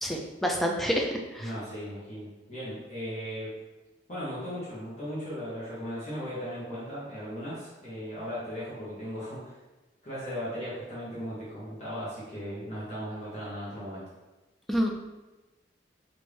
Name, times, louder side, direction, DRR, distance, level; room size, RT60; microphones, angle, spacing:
voice 1, 0.0-1.5 14.7-14.9, equal, ahead, 0 dB, 0.3 m, -28 dB
voice 2, 1.4-3.5 4.1-9.5 10.0-14.0, equal, 40° left, -9 dB, 1.0 m, -37 dB
3.2 x 2.6 x 3.3 m, 1.1 s
head